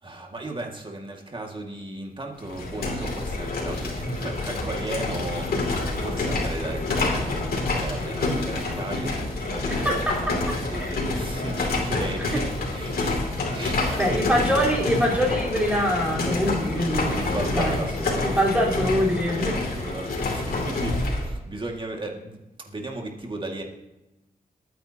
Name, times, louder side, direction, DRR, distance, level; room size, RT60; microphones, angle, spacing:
voice 1, 0.0-14.6 16.7-18.9 19.5-22.4 22.7-23.6, right 2 dB, 35° right, 1 dB, 2.1 m, -36 dB
sound 1, 2.4-21.3, left 2 dB, 85° left, 2.7 m, -27 dB
voice 2, 9.7-10.2 10.8-10.9 14.0-17.2 17.5-17.8 18.4-19.6, equal, 10° right, -5 dB, 4.2 m, -24 dB
22.0 x 9.5 x 2.9 m, 0.98 s
wide cardioid pair, 105°, 15 cm